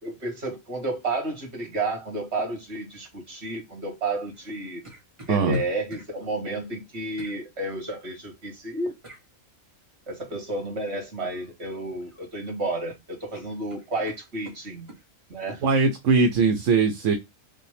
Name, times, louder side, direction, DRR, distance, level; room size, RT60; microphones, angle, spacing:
voice 1, 0.0-4.8 5.3-9.0 10.1-14.9 15.3-15.6, right 2 dB, 55° right, 1.9 m, -31 dB
sound 1, 4.3-6.1 7.2-7.4 9.0-9.3 11.2-11.5 11.9-12.6 12.9-13.0 13.3-15.1 15.5-15.7, right 2 dB, 25° right, 1.1 m, -47 dB
voice 2, 5.3-5.6 15.6-17.2, right 4 dB, 75° right, 0.9 m, -21 dB
5.2 x 2.2 x 3.2 m
omnidirectional pair, 1.4 m